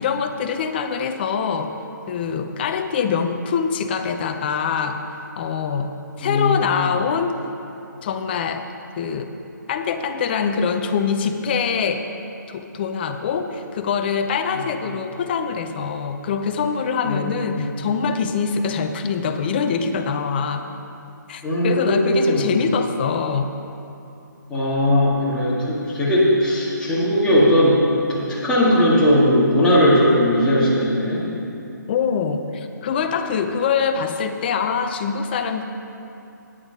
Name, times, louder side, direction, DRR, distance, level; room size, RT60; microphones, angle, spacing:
voice 1, 0.0-1.7 2.1-5.0 5.4-5.9 6.2-7.3 8.0-8.7 9.0-9.3 9.7-12.0 12.5-20.7 21.3-23.5 31.9-35.6, left 6 dB, 30° left, 7 dB, 0.5 m, -24 dB
voice 2, 6.2-6.6 17.0-17.6 21.4-22.5 24.5-27.8 28.1-31.2, equal, 5° left, -8 dB, 1.9 m, -18 dB
9.8 x 8.5 x 5.2 m, 2.7 s
hypercardioid pair, 155°, 11 cm